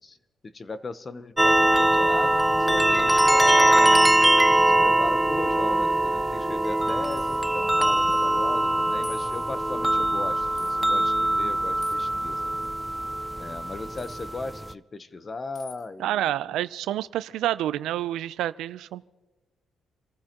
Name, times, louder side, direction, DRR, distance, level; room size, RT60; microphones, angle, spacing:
voice 1, 0.4-4.1 4.8-12.7 13.4-16.7, left 3 dB, 30° left, 12 dB, 0.9 m, -37 dB
sound 1, 1.4-14.7, right 1 dB, 5° right, 0.4 m, -22 dB
sound 2, 2.5-6.7, right 7 dB, 55° right, 1.3 m, -39 dB
sound 3, 6.8-7.5 8.1-8.3 8.6-8.7 9.0-9.7 10.6-10.7 11.8-12.1 14.0-14.3 15.5-15.8, left 6 dB, 65° left, 2.2 m, -48 dB
voice 2, 16.0-19.0, right 13 dB, 85° right, 15 dB, 0.5 m, -28 dB
28.5 x 14.5 x 3.0 m, 1.1 s
cardioid pair, 90°, 0 cm